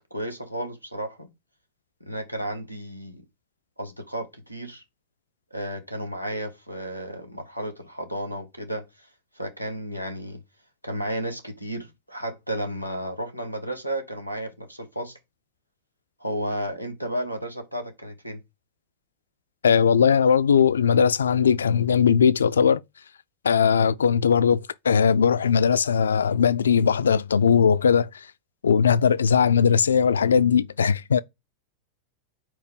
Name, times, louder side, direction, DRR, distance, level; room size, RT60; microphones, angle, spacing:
voice 1, 0.1-1.3 2.0-3.2 3.8-4.8 5.5-9.1 9.3-10.4 10.8-15.2 16.2-18.4, right 1 dB, 90° right, 1.2 m, -33 dB
voice 2, 19.6-22.8 23.4-28.1 28.6-31.2, left 7 dB, 70° left, 0.3 m, -19 dB
4.5 x 4.5 x 5.1 m
figure-of-eight pair, 90°, 0 cm